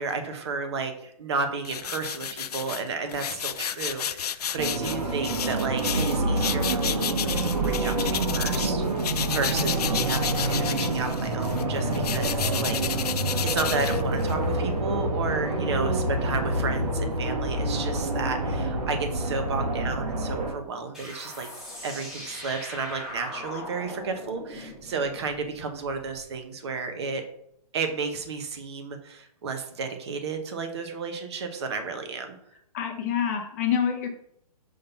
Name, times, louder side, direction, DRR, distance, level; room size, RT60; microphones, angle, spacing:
voice 1, 0.0-13.1 13.4-21.5 21.8-27.2 27.7-32.3, right 4 dB, 45° right, 7 dB, 1.0 m, -32 dB
sound 1, 1.6-8.7 9.0-14.5, left 9 dB, 75° left, 0.5 m, -32 dB
sound 2, 4.6-20.5, right 2 dB, 90° right, 2.1 m, -27 dB
sound 3, 20.9-26.2, left 1 dB, ahead, 1.3 m, -40 dB
voice 2, 32.7-34.1, left 8 dB, 25° left, 4 dB, 0.7 m, -26 dB
5.4 x 3.8 x 5.7 m, 0.73 s
hypercardioid pair, 160°, 20 cm